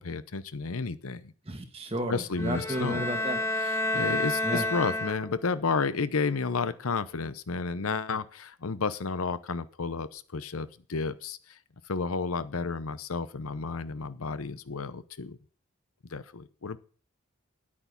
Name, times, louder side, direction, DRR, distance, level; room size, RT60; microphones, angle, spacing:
voice 1, 0.0-1.3 2.1-3.1 3.9-11.6 11.9-15.4 16.1-16.8, left 4 dB, 80° left, 14 dB, 0.8 m, -31 dB
voice 2, 1.4-3.4 4.4-4.6, equal, 25° right, 6 dB, 1.7 m, -32 dB
sound 1, 2.3-5.6, left 2 dB, 15° left, 1.3 m, -30 dB
10.5 x 8.7 x 5.6 m, 0.40 s
head